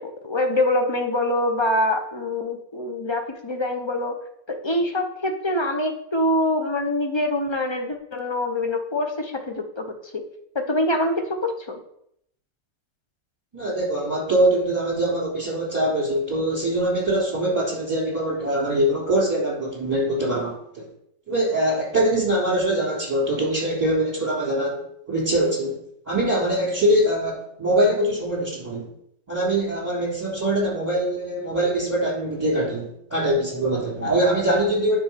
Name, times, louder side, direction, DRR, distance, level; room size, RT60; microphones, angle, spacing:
voice 1, 0.0-4.2 4.5-10.2 10.5-11.8, left 1 dB, 30° left, 4 dB, 0.5 m, -25 dB
voice 2, 13.5-20.9 21.3-25.8 26.1-28.9 29.3-35.0, right 1 dB, 10° right, -4 dB, 3.5 m, -23 dB
9.4 x 4.3 x 5.9 m, 0.72 s
omnidirectional pair, 1.9 m